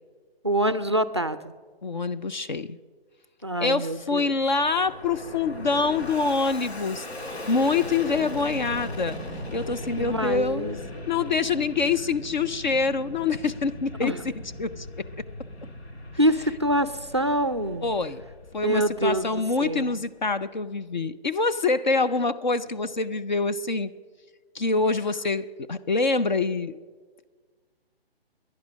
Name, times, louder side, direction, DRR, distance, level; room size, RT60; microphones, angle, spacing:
voice 1, 0.4-1.5 3.4-4.4 10.0-10.8 14.0-14.2 16.2-18.0 18.6-20.0, right 1 dB, 30° right, 13 dB, 0.4 m, -26 dB
voice 2, 1.8-2.8 3.6-9.2 9.5-10.8 11.1-14.1 14.6-14.9 17.8-18.2 18.5-23.9 24.5-26.8, left 4 dB, 45° left, 11 dB, 0.5 m, -25 dB
Fixed-wing aircraft airplane, 3.7-20.3, left 1 dB, 90° left, 2.7 m, -39 dB
21.0 x 10.5 x 6.2 m, 1.5 s
hypercardioid pair, 175°, 31 cm